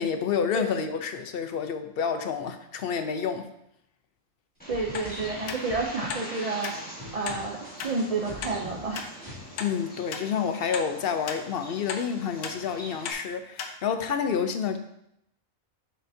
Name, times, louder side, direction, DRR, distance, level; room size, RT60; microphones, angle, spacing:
voice 1, 0.0-3.5 9.6-14.8, left 7 dB, 60° left, 0.7 m, -29 dB
Bird, 4.6-13.1, right 1 dB, 5° left, 1.4 m, -43 dB
sound 1, 4.7-6.7 7.0-9.4, equal, 20° right, 2.4 m, -43 dB
voice 2, 4.7-6.7 7.1-9.1, right 3 dB, 45° right, 0.5 m, -30 dB
sound 2, 4.9-5.1 5.5-5.6 6.1-6.3 6.6-6.8 7.2-7.4 7.8-7.9 8.4-8.5 8.9-9.1 9.6-9.7 10.1-10.3 10.7-10.9 11.3-11.4 11.9-12.0 12.4-12.6 13.0-13.2 13.6-13.7 14.2-14.3, left 6 dB, 90° left, 1.1 m, -35 dB
7.6 x 6.4 x 2.7 m
omnidirectional pair, 1.4 m